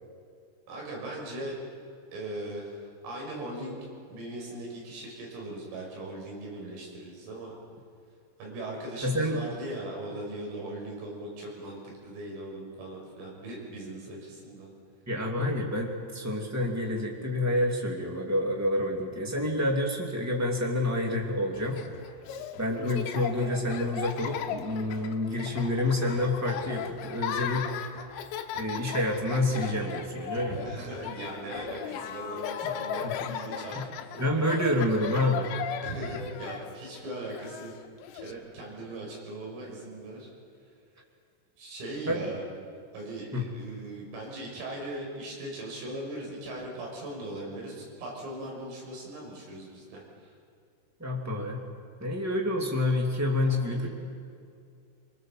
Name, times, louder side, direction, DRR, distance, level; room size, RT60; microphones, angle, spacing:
voice 1, 0.7-1.6 2.1-3.8 4.1-7.6 8.4-14.7 30.5-34.3 35.8-37.7 38.2-40.3 41.6-42.4 42.9-50.3 53.7-53.9, right 1 dB, 80° right, -2 dB, 8.7 m, -39 dB
voice 2, 9.0-9.4 15.1-21.8 22.6-27.7 28.5-30.6 33.0-33.3 33.7-33.8 34.2-35.5 42.1-42.3 43.3-43.4 51.0-51.6 52.0-53.9, left 1 dB, 10° right, 0 dB, 0.7 m, -28 dB
Laughter, 21.5-38.3, left 9 dB, 70° left, 3.1 m, -37 dB
25.5 x 25.0 x 7.7 m, 2.4 s
omnidirectional pair, 5.9 m